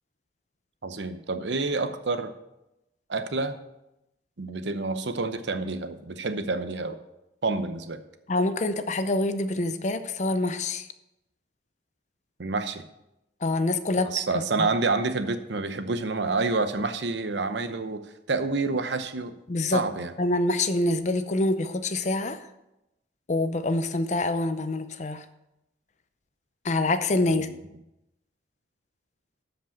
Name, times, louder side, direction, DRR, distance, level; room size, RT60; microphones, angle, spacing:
voice 1, 0.8-2.3 3.1-3.5 4.4-7.0 7.4-8.0 12.4-12.8 14.0-18.0 18.3-19.3 19.7-20.1 27.3-27.4, right 3 dB, 75° right, 10 dB, 0.8 m, -28 dB
voice 2, 8.3-10.9 13.4-14.1 14.3-14.7 19.5-19.8 20.2-22.4 23.3-25.2 26.6-27.5, left 2 dB, 40° left, 10 dB, 0.6 m, -26 dB
13.0 x 5.2 x 5.9 m, 0.90 s
head